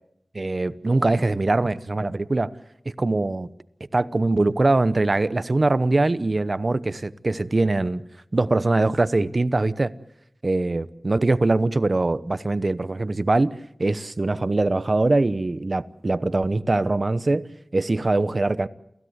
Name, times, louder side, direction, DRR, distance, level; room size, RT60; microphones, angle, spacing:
voice 1, 0.3-2.5 2.8-3.5 3.9-8.0 8.3-9.9 10.4-13.5 13.8-18.7, right 2 dB, 50° right, 0.9 m, -22 dB
29.0 x 16.5 x 8.1 m
wide cardioid pair, 60°, 0 cm